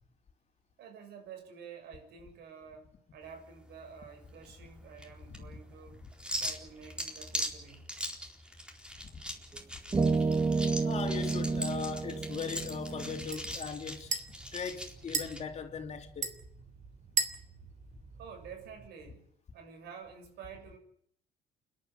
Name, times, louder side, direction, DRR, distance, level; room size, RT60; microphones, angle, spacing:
voice 1, 0.8-6.1 6.4-7.9 18.2-19.3 19.5-20.8, right 6 dB, 75° right, 6.9 m, -49 dB
sound 1, 3.2-15.4, equal, 5° right, 4.1 m, -41 dB
voice 2, 5.3-5.6 5.9-6.1 9.1-9.2 10.0-10.4 10.8-14.1 14.5-16.3, left 6 dB, 40° left, 3.5 m, -39 dB
sound 2, 9.5-9.6 9.9-13.3, right 4 dB, 20° right, 1.5 m, -30 dB
sound 3, 11.1-18.9, right 5 dB, 45° right, 3.1 m, -40 dB
29.0 x 11.5 x 9.7 m
cardioid pair, 110°, 17 cm